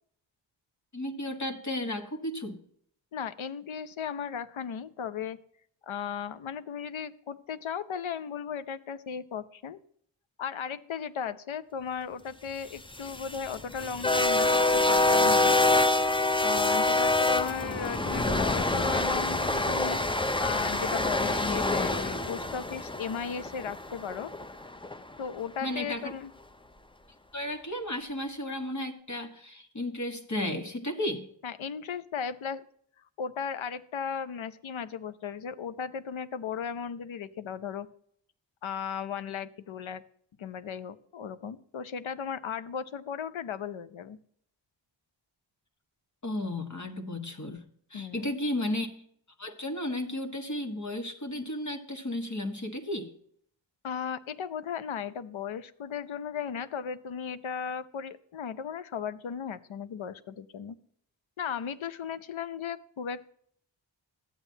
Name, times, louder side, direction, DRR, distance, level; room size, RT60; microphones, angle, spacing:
voice 1, 0.9-2.6 25.6-26.1 27.3-31.3 46.2-47.6 47.9-48.9 49.4-53.1, left 1 dB, 40° left, 5 dB, 1.4 m, -34 dB
voice 2, 3.1-5.4 5.8-9.8 10.4-15.6 16.4-20.0 20.4-24.3 25.2-26.3 31.4-32.6 33.2-37.9 38.6-40.0 40.4-44.2 47.9-48.3 53.8-60.8 61.4-63.3, left 7 dB, 85° left, 15 dB, 0.7 m, -36 dB
sound 1, 12.8-25.0, left 2 dB, 10° left, 0.5 m, -26 dB
13.0 x 8.9 x 2.7 m, 0.64 s
wide cardioid pair, 80°, 46 cm